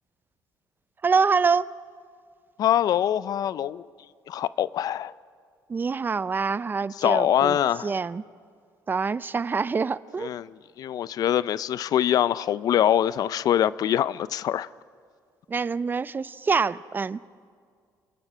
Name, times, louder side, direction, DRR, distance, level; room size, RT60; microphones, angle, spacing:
voice 1, 1.0-1.7 5.7-7.6 7.8-8.2 8.9-10.3 15.5-17.2, right 5 dB, 30° right, 18 dB, 0.5 m, -25 dB
voice 2, 2.6-3.8 4.3-5.1 7.0-7.9 10.2-14.7, left 10 dB, 60° left, 18 dB, 0.4 m, -24 dB
28.0 x 18.0 x 5.5 m, 2.1 s
cardioid pair, 100°, 7 cm